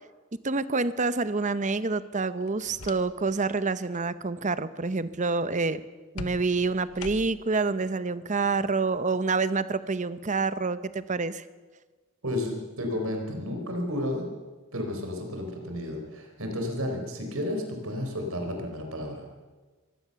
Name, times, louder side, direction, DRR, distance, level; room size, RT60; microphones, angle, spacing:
voice 1, 0.4-5.8 6.1-11.4, right 3 dB, 35° right, 14 dB, 0.8 m, -27 dB
sound 1, 2.4-3.4 3.7-4.1 6.2-7.6, left 3 dB, 85° left, 1.1 m, -42 dB
voice 2, 12.2-14.3 14.7-19.3, left 1 dB, 65° right, 3 dB, 4.5 m, -32 dB
23.5 x 16.0 x 6.9 m, 1.3 s
head